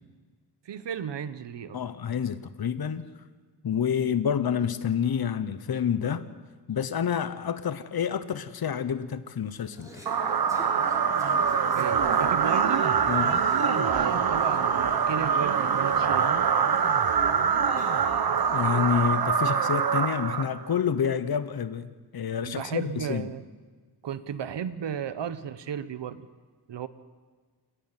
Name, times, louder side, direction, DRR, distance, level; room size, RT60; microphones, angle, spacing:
voice 1, 0.6-1.8 11.7-12.9 13.8-16.3 22.4-23.4 24.0-26.3 26.7-26.9, right 8 dB, 85° right, 13 dB, 1.0 m, -34 dB
voice 2, 1.7-3.1 3.6-6.3 6.7-9.9 13.1-13.4 18.5-23.3, left 8 dB, 60° left, 13 dB, 1.1 m, -28 dB
Conversation / Chatter, 9.5-18.4, right 1 dB, 10° right, 5.7 m, -46 dB
sound 1, 10.1-20.8, right 6 dB, 60° right, 1.1 m, -24 dB
29.0 x 10.0 x 9.0 m, 1.4 s
cardioid pair, 70°, 42 cm